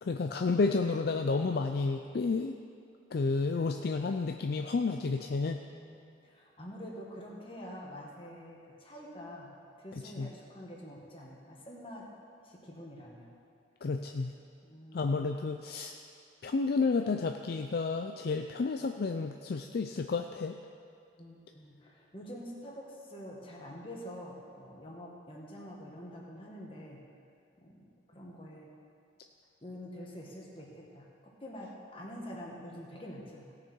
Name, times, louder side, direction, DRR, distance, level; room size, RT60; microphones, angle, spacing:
voice 1, 0.0-2.5 3.1-5.6 10.2-10.3 13.8-14.3 14.9-16.0 16.4-20.6, left 4 dB, 55° left, 5 dB, 0.4 m, -31 dB
voice 2, 5.7-12.1 12.4-13.3 14.6-15.4 21.2-27.0 27.6-28.7 29.6-33.5, equal, 30° left, -3 dB, 1.7 m, -46 dB
17.5 x 6.7 x 4.6 m, 2.4 s
head